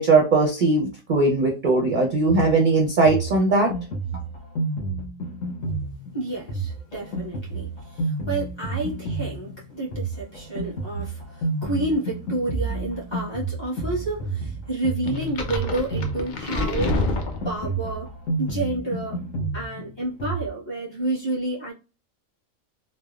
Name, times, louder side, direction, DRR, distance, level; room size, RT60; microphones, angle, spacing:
voice 1, 0.0-3.7, right 3 dB, 50° right, 0.6 m, -19 dB
Drum kit, 2.3-20.5, right 2 dB, 75° left, 1.2 m, -30 dB
voice 2, 6.1-17.1 17.4-18.1 18.4-19.2 19.5-21.7, right 2 dB, 20° left, 1.2 m, -30 dB
sound 1, 15.1-17.9, left 2 dB, 60° left, 0.5 m, -28 dB
3.3 x 2.0 x 2.3 m
omnidirectional pair, 1.4 m